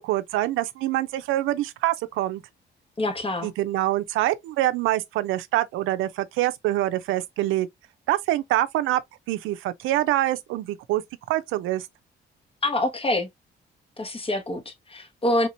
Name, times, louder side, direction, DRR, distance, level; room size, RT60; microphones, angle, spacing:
voice 1, 0.0-2.4 3.4-7.7 8.1-9.0 9.3-11.0 11.3-11.9, right 15 dB, 90° right, 0.5 m, -25 dB
voice 2, 3.0-3.5 12.6-13.3 14.0-15.5, left 1 dB, 30° left, 1.1 m, -26 dB
3.6 x 2.9 x 2.5 m
cardioid pair, 90°, 20 cm